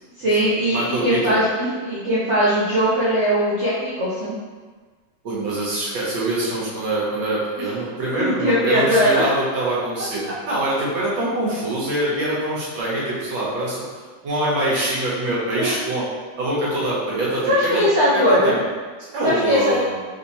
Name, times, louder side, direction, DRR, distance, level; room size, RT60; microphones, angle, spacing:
voice 1, 0.2-4.3 8.1-9.2 15.6-15.8 17.5-18.6 19.2-19.8, equal, 65° right, -10 dB, 0.7 m, -20 dB
voice 2, 0.7-1.4 5.2-13.8 14.2-16.0 16.4-17.8 18.1-18.6 19.0-20.0, right 1 dB, 85° right, -6 dB, 1.8 m, -24 dB
4.1 x 2.7 x 2.9 m, 1.5 s
omnidirectional pair, 2.0 m